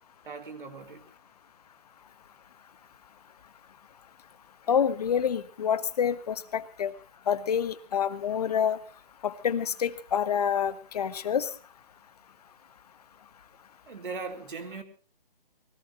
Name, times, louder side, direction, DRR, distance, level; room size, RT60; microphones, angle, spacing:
voice 1, 0.2-1.1 13.9-14.8, right 4 dB, 60° right, 3.9 m, -39 dB
voice 2, 4.7-6.9 7.3-8.8 9.2-11.5, left 8 dB, 40° left, 1.4 m, -27 dB
23.5 x 18.0 x 3.1 m
figure-of-eight pair, 150°, 29 cm